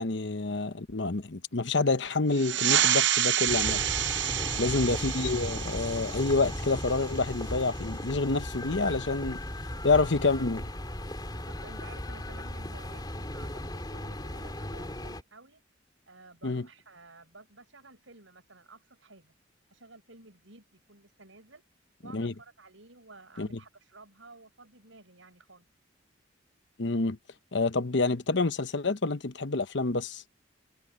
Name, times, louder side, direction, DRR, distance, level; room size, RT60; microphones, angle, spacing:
voice 1, 0.0-3.8 4.6-9.4 9.8-10.6 16.4-16.7 22.1-22.3 23.4-23.5 26.8-27.2 27.5-30.2, left 3 dB, 65° left, 1.0 m, -28 dB
sound 1, 2.3-7.4, right 11 dB, 65° right, 0.7 m, -29 dB
sound 2, 3.5-15.2, left 1 dB, 20° left, 3.6 m, -36 dB
voice 2, 4.5-4.9 11.3-15.6 16.1-19.3 19.7-21.6 22.0-25.7, right 3 dB, 85° right, 7.0 m, -53 dB
head